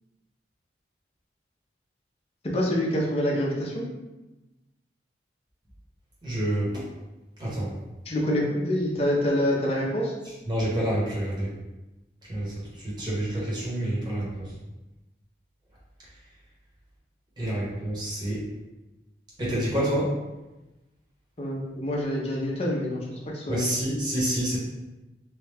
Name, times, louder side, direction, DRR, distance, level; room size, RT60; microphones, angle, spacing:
voice 1, 2.4-3.8 8.1-10.1 21.4-23.1 23.3-23.7, left 1 dB, 35° left, -2 dB, 0.6 m, -26 dB
voice 2, 6.2-6.8 7.4-7.7 10.5-11.5 12.3-14.5 17.4-18.4 19.4-20.1 23.5-24.6, right 1 dB, 25° right, -7 dB, 1.0 m, -28 dB
3.1 x 2.3 x 3.3 m, 1.0 s
head